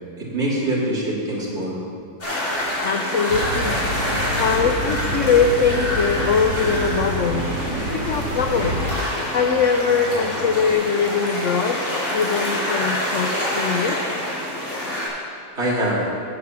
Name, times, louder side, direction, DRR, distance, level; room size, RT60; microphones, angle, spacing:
voice 1, 0.2-1.8 15.6-16.1, right 1 dB, 35° right, -6 dB, 2.7 m, -23 dB
sound 1, 2.2-15.1, left 1 dB, 35° left, 3.4 m, -27 dB
voice 2, 2.8-3.8 4.4-7.5 7.9-8.7 9.3-11.8 12.1-14.0, left 5 dB, 65° left, 4 dB, 0.7 m, -21 dB
sound 2, 3.3-9.0, right 1 dB, 80° right, 1.5 m, -28 dB
sound 3, 3.9-10.7, right 2 dB, 55° right, 2.3 m, -36 dB
9.6 x 8.0 x 7.0 m, 2.6 s
omnidirectional pair, 2.0 m